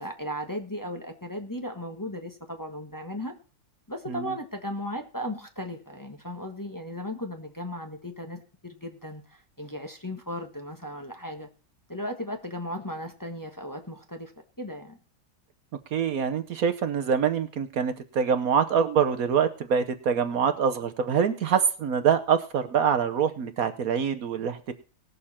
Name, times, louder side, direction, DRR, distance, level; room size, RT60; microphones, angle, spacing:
voice 1, 0.0-3.3 3.9-11.5 11.9-14.3 14.6-15.0, left 1 dB, 15° left, 3 dB, 1.4 m, -36 dB
voice 2, 15.9-24.7, right 7 dB, 65° right, 10 dB, 1.3 m, -25 dB
19.0 x 6.9 x 4.3 m, 0.36 s
omnidirectional pair, 1.7 m